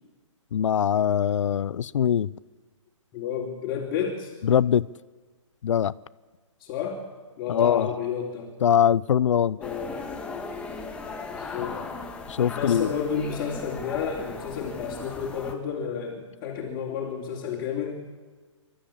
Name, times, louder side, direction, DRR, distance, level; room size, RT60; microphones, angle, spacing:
voice 1, 0.5-2.3 4.4-4.9 5.6-5.9 7.5-7.9 8.6-9.6 12.3-12.9, left 9 dB, 70° left, 0.6 m, -22 dB
voice 2, 3.1-4.3 6.6-7.0 7.4-8.5 9.6-10.0 11.3-11.8 12.5-18.0, left 7 dB, 30° left, 3.3 m, -31 dB
sound 1, 9.6-15.5, left 4 dB, 5° left, 1.6 m, -37 dB
28.5 x 13.0 x 8.7 m
hypercardioid pair, 150°, 17 cm